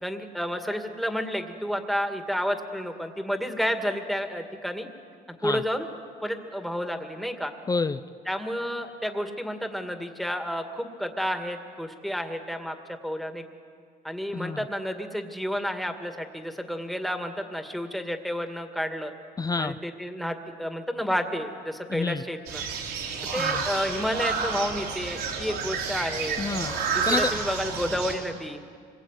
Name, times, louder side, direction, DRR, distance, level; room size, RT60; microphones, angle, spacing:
voice 1, 0.0-4.9 5.4-5.9 6.2-7.5 8.3-12.8 13.0-13.4 14.0-19.1 19.6-22.6 23.3-26.4 26.9-28.6, equal, ahead, 5 dB, 2.3 m, -30 dB
voice 2, 7.7-8.0 14.3-14.6 19.4-19.8 21.9-22.2 23.4-23.6 26.4-26.7 27.1-27.3, left 4 dB, 20° left, 13 dB, 0.7 m, -28 dB
sound 1, 22.5-28.2, right 5 dB, 90° right, 5.4 m, -30 dB
26.0 x 22.0 x 9.2 m, 2.2 s
cardioid pair, 110°, 17 cm